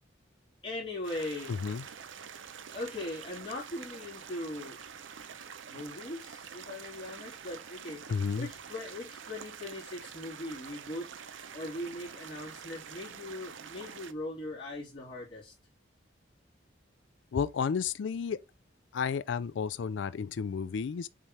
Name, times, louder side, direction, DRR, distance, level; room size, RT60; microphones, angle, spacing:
voice 1, 0.6-1.6 2.7-4.8 5.7-8.0 8.4-11.1 11.5-15.5, left 1 dB, 25° left, 3.5 m, -40 dB
sound 1, 1.0-14.1, right 7 dB, 90° right, 0.6 m, -46 dB
voice 2, 1.5-1.8 8.1-8.5 17.3-18.4 18.9-21.1, left 6 dB, 80° left, 0.4 m, -32 dB
7.3 x 4.2 x 3.3 m
head